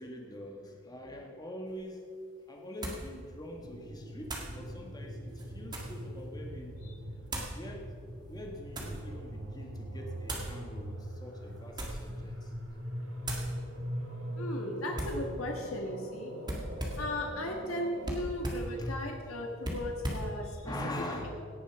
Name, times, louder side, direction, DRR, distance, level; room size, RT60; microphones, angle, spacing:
voice 1, 0.0-2.1 2.5-6.8 7.5-7.9 8.3-12.9 18.8-19.3 20.6-21.5, left 1 dB, 20° left, 1 dB, 1.6 m, -43 dB
sound 1, 1.7-1.8 2.8-3.1 4.2-4.6 5.3-6.0 7.3-7.6 8.3-9.0 10.2-10.5 11.6-12.1 12.5-12.8 13.2-13.5 14.9-15.2 16.4-17.1 18.0-18.7 19.6-20.3, right 1 dB, 20° right, 1.8 m, -38 dB
sound 2, 3.6-18.1, equal, 80° right, 2.5 m, -42 dB
voice 2, 14.4-16.3 17.0-20.7, left 1 dB, 85° left, 1 dB, 1.4 m, -36 dB
17.0 x 7.1 x 6.0 m, 2.3 s
head